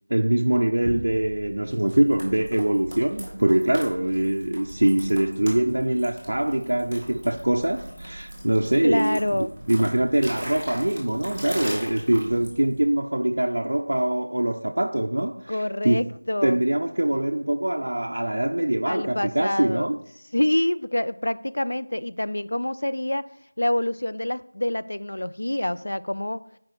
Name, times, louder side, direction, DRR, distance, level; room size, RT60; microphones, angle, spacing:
voice 1, 0.1-16.1 16.4-20.0, right 1 dB, 55° right, 0.3 m, -23 dB
sound 1, 0.8-12.9, equal, 5° left, 1.0 m, -39 dB
voice 2, 8.8-9.5 15.5-16.6 18.9-19.9 20.3-26.4, left 1 dB, 65° left, 0.3 m, -26 dB
5.6 x 4.8 x 4.4 m
figure-of-eight pair, 180°, 0 cm